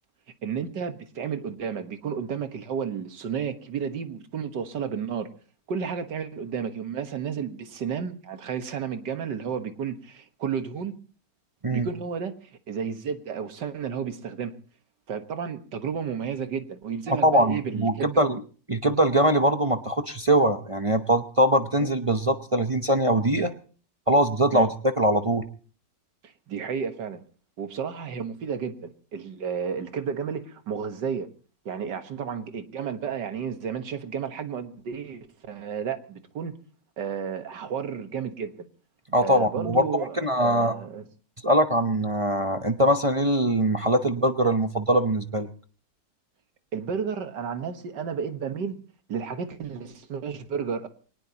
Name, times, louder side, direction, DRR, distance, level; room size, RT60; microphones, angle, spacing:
voice 1, 0.4-5.3 5.7-10.9 11.7-12.4 12.7-14.5 15.1-18.1 24.5-24.7 26.2-27.2 27.6-31.3 31.7-36.5 37.0-38.7 39.2-41.0 46.7-48.8 49.1-50.9, right 7 dB, 85° right, 8 dB, 2.0 m, -32 dB
voice 2, 17.1-18.4 18.7-23.5 24.1-25.5 39.1-40.7 41.4-45.5, right 1 dB, 30° right, 7 dB, 0.6 m, -22 dB
23.5 x 19.0 x 2.9 m, 0.41 s
omnidirectional pair, 1.8 m